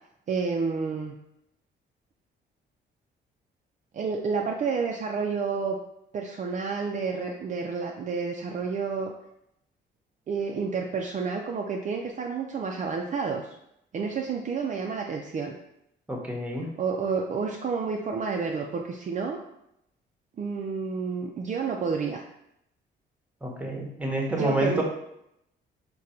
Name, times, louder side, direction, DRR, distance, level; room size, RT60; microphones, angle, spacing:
voice 1, 0.3-1.1 3.9-5.8 6.1-9.1 10.3-13.5 13.9-15.5 16.8-19.4 20.4-22.2 24.3-24.8, right 5 dB, 40° right, 1 dB, 0.4 m, -30 dB
voice 2, 16.1-16.7 23.4-24.8, right 1 dB, 5° right, 0 dB, 0.9 m, -29 dB
3.7 x 2.2 x 4.2 m, 0.80 s
cardioid pair, 90°, 20 cm